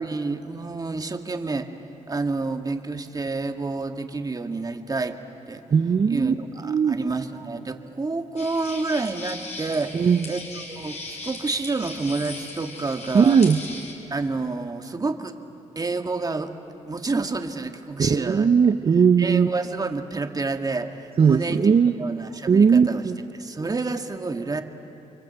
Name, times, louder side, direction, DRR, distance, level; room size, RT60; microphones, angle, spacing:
voice 1, 0.0-1.7 2.1-5.2 5.5-5.6 6.1-13.4 14.1-15.4 15.8-16.5 16.8-18.5 19.2-21.7 22.0-23.0 23.3-24.6, right 3 dB, 30° right, 6 dB, 1.8 m, -29 dB
voice 2, 5.7-6.3 6.6-7.0 9.9-10.2 13.1-13.6 18.0-19.5 21.2-22.0 22.5-23.2, right 6 dB, 45° right, 7 dB, 0.9 m, -18 dB
sound 1, 8.4-13.9, left 3 dB, 60° left, 5.5 m, -38 dB
30.0 x 24.0 x 8.1 m, 2.9 s
cardioid pair, 80°, 13 cm